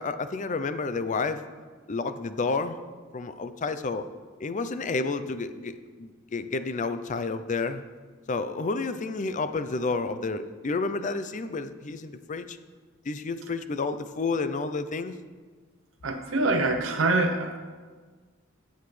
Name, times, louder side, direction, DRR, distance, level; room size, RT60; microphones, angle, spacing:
voice 1, 0.0-1.4 1.9-2.8 3.1-4.0 4.4-7.8 8.3-12.6 13.1-15.1, left 3 dB, 40° left, 11 dB, 0.5 m, -30 dB
voice 2, 16.0-17.6, right 2 dB, 75° right, 5 dB, 0.8 m, -25 dB
15.5 x 8.0 x 3.2 m, 1.5 s
head